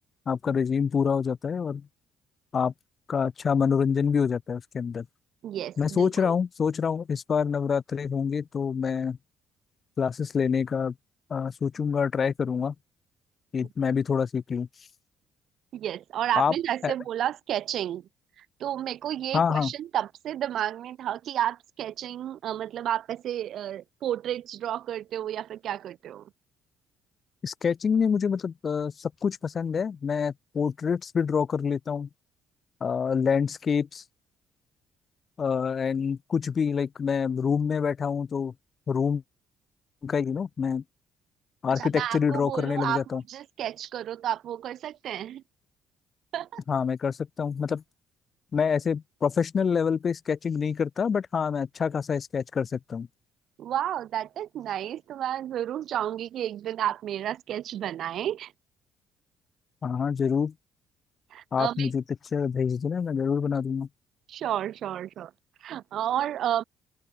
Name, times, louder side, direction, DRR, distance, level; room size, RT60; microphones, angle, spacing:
voice 1, 0.3-1.8 2.5-2.7 3.1-5.1 5.8-9.2 10.0-10.9 11.3-12.7 13.5-14.7 16.4-16.5 16.8-16.9 19.3-19.7 27.4-32.1 32.8-34.0 35.4-38.5 38.9-39.2 40.0-40.8 41.6-43.2 46.7-47.8 48.5-53.1 59.8-60.5 61.5-62.0 62.3-63.9, left 6 dB, 40° left, 0.9 m, -26 dB
voice 2, 5.4-6.3 15.7-18.1 18.4-26.3 41.8-43.0 43.3-45.4 46.3-46.6 53.6-58.5 61.3-61.9 64.3-65.3 65.6-66.6, right 11 dB, 55° right, 1.9 m, -31 dB
figure-of-eight pair, 45°, 0 cm